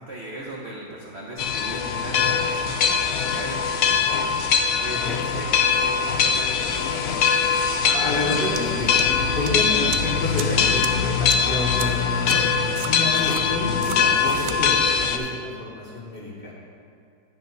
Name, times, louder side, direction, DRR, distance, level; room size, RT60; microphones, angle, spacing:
voice 1, 0.0-7.3, right 1 dB, 45° right, -4 dB, 1.0 m, -38 dB
sound 1, 1.4-15.2, left 6 dB, 85° left, 0.6 m, -22 dB
voice 2, 4.9-5.4 7.8-12.4 12.7-16.5, left 2 dB, 30° left, -4 dB, 1.8 m, -29 dB
sound 2, 8.5-8.6 9.0-9.5 9.9-10.0 10.4-10.5 10.8-10.9 11.3-11.4 11.8-11.9 12.3-12.4 12.8-13.4 13.8-14.0 14.3-14.6, right 11 dB, 80° right, 1.2 m, -33 dB
9.3 x 6.8 x 5.3 m, 2.4 s
omnidirectional pair, 2.0 m